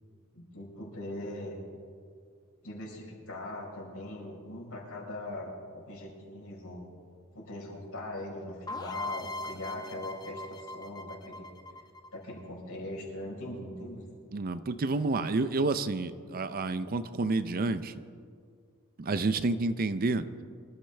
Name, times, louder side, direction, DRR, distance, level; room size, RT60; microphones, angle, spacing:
voice 1, 0.3-1.6 2.6-6.9 7.3-11.5 12.1-14.0, left 1 dB, 70° left, -3 dB, 4.5 m, -41 dB
sound 1, 8.7-12.4, left 2 dB, 20° left, 0.9 m, -40 dB
voice 2, 14.3-17.9 19.0-20.2, right 3 dB, 40° right, 12 dB, 0.5 m, -29 dB
24.5 x 13.5 x 3.4 m, 2.2 s
head